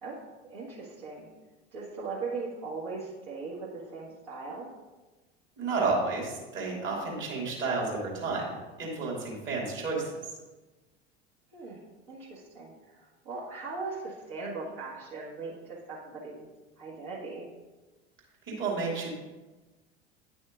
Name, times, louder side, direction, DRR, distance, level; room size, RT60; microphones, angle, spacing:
voice 1, 0.5-1.3 1.7-4.7 11.5-11.8 12.1-16.5 16.8-17.5, right 3 dB, 55° right, -8 dB, 1.8 m, -39 dB
voice 2, 5.6-10.2 18.5-19.1, right 3 dB, 35° right, -2 dB, 2.4 m, -31 dB
10.0 x 6.1 x 2.5 m, 1.2 s
figure-of-eight pair, 70°, 32 cm